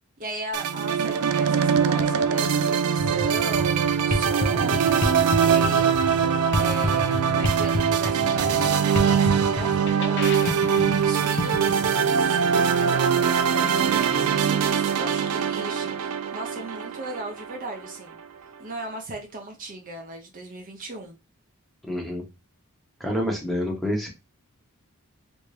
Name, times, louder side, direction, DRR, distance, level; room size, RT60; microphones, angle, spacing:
voice 1, 0.2-18.2 18.6-21.1, right 2 dB, 40° right, 0.6 m, -37 dB
sound 1, 0.5-17.9, right 7 dB, 90° right, 0.4 m, -22 dB
sound 2, 3.0-11.9, left 1 dB, 50° left, 0.6 m, -29 dB
voice 2, 21.8-22.2 23.0-24.1, equal, ahead, 0.8 m, -27 dB
3.3 x 2.6 x 3.2 m
head